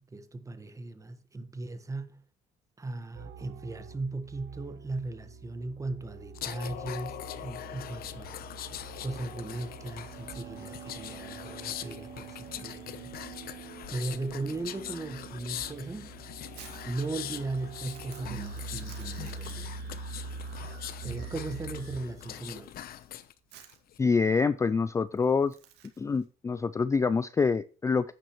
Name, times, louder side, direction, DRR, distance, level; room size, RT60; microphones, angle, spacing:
voice 1, 0.0-2.2 2.8-8.4 9.0-13.1 13.9-16.2 16.8-19.7 20.7-20.8 21.0-22.8, right 2 dB, 20° right, 1.4 m, -37 dB
sound 1, 3.1-22.6, right 5 dB, 65° right, 1.3 m, -45 dB
sound 2, 6.3-23.3 23.7-24.0, left 11 dB, 60° left, 0.9 m, -42 dB
Crumpling crinkling, 15.7-26.2, right 10 dB, 80° right, 2.2 m, -56 dB
voice 2, 24.0-25.6 26.0-28.1, left 5 dB, 20° left, 0.3 m, -26 dB
10.5 x 9.1 x 3.1 m
cardioid pair, 110°, 17 cm